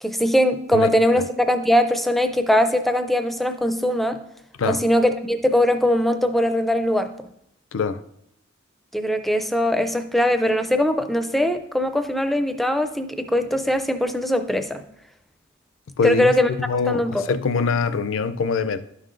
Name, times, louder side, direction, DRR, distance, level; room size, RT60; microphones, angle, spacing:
voice 1, 0.0-4.2 4.6-7.3 8.9-14.8 16.0-16.5 16.9-17.2, left 1 dB, ahead, 0.4 m, -21 dB
voice 2, 16.0-16.3 16.6-18.8, left 5 dB, 70° left, 0.4 m, -23 dB
11.5 x 5.6 x 2.5 m
head